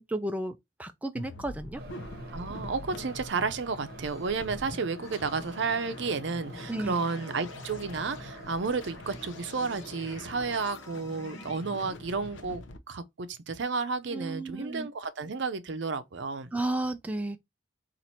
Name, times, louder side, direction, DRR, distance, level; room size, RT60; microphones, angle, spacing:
voice 1, 0.0-1.8 6.7-7.0 14.1-14.9 16.5-17.4, right 2 dB, 10° right, 0.3 m, -33 dB
sound 1, 1.1-12.8, left 2 dB, 80° left, 0.7 m, -45 dB
sound 2, 1.8-10.3, right 1 dB, 50° right, 0.8 m, -47 dB
voice 2, 2.3-16.5, right 4 dB, 70° right, 0.5 m, -32 dB
sound 3, 3.5-11.5, left 3 dB, 15° left, 1.1 m, -51 dB
4.4 x 2.5 x 4.1 m
head